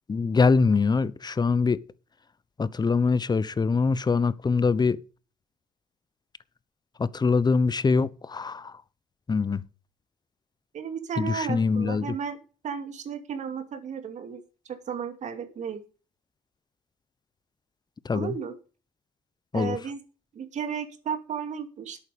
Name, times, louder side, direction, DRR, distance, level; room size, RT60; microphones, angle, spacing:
voice 1, 0.1-1.8 2.6-5.0 7.0-8.7 9.3-9.6 11.2-12.1 18.0-18.3 19.5-19.8, left 4 dB, 30° left, 0.9 m, -23 dB
voice 2, 10.7-12.4 12.6-14.4 14.7-15.8 18.1-18.6 19.5-20.0 20.3-22.0, right 7 dB, 55° right, 2.5 m, -34 dB
11.0 x 8.7 x 5.2 m
hypercardioid pair, 60°, 15 cm